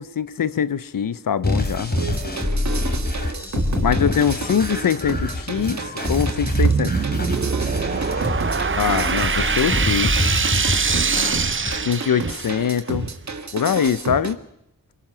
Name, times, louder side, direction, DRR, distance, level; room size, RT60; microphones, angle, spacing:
voice 1, 0.0-1.9 3.8-6.9 8.7-10.1 11.8-13.1 13.5-14.4, left 8 dB, 75° left, 0.8 m, -23 dB
sound 1, 1.4-11.8, left 2 dB, 30° left, 3.6 m, -26 dB
voice 2, 1.9-3.5 7.7-8.4 10.8-11.6, right 5 dB, 80° right, 3.4 m, -39 dB
sound 2, 2.0-14.3, right 4 dB, 55° right, 1.9 m, -31 dB
sound 3, 6.3-12.6, right 5 dB, 35° right, 0.8 m, -23 dB
23.0 x 23.0 x 6.2 m
cardioid pair, 60°, 33 cm